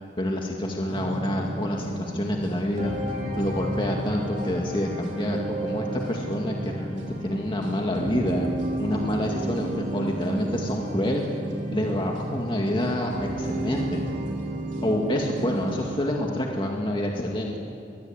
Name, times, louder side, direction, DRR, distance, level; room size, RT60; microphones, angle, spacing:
voice 1, 0.2-3.0 3.4-8.5 8.8-11.2 11.7-14.0 14.8-17.6, left 1 dB, 30° left, 0 dB, 2.1 m, -27 dB
sound 1, 0.9-16.0, right 1 dB, 45° right, 4.5 m, -32 dB
23.0 x 22.5 x 8.8 m, 2.7 s
head